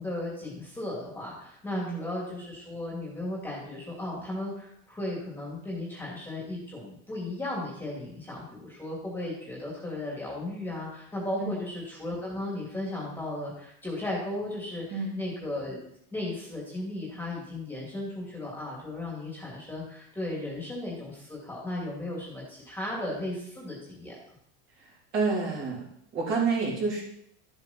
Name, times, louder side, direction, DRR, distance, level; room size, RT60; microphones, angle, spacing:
voice 1, 0.0-15.8 16.1-24.2, left 1 dB, 5° left, -4 dB, 2.8 m, -35 dB
voice 2, 25.1-25.8 26.1-27.0, right 4 dB, 35° right, -5 dB, 3.9 m, -28 dB
12.5 x 7.9 x 4.4 m, 0.74 s
supercardioid pair, 155°, 34 cm